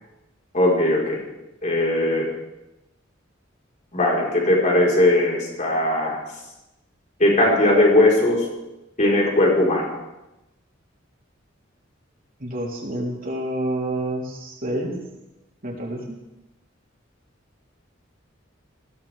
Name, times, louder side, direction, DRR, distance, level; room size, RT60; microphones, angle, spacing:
voice 1, 0.5-1.2 1.6-2.3 3.9-6.2 7.2-8.5 9.0-10.0, left 1 dB, 40° left, -3 dB, 4.8 m, -19 dB
voice 2, 12.4-14.9 15.6-16.2, right 1 dB, 45° right, -3 dB, 3.8 m, -28 dB
20.5 x 16.0 x 3.6 m, 0.96 s
head